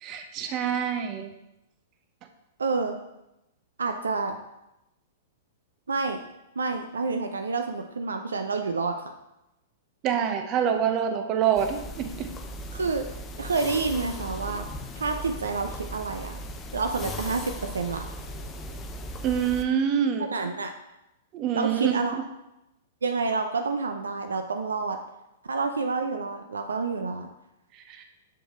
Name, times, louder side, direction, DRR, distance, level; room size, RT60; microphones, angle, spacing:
voice 1, 0.0-1.3 10.0-12.3 19.2-20.3 21.3-22.2 27.9-28.0, right 8 dB, 35° right, 6 dB, 0.7 m, -26 dB
voice 2, 2.6-3.0 3.8-4.4 5.9-6.2 6.6-9.0 12.7-13.1 13.4-14.6 14.9-16.4 16.7-18.1 20.3-20.7 21.5-22.2 23.0-25.0 25.4-27.3, right 4 dB, 75° right, 6 dB, 0.5 m, -28 dB
sound 1, 11.5-19.6, equal, 20° left, 0.6 m, -38 dB
6.7 x 4.9 x 3.7 m, 0.91 s
figure-of-eight pair, 105°, 0 cm